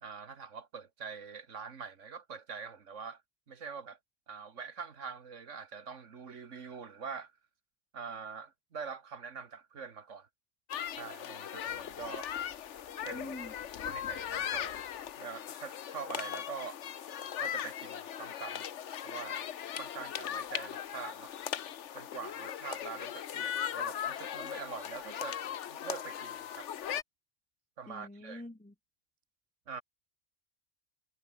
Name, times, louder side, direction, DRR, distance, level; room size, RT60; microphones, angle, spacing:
voice 1, 0.0-3.2 3.5-4.0 4.3-7.3 7.9-10.3 11.0-12.3 13.0-13.3 13.9-14.8 15.2-16.8 17.4-18.7 19.0-19.4 19.8-21.3 21.9-26.7 27.8-28.4 29.7-29.8, right 5 dB, 65° right, 1.9 m, -44 dB
sound 1, 10.7-27.0, left 10 dB, 65° left, 1.1 m, -39 dB
voice 2, 13.1-13.5 27.9-28.7, left 1 dB, 10° left, 0.4 m, -45 dB
omnidirectional pair, 1.4 m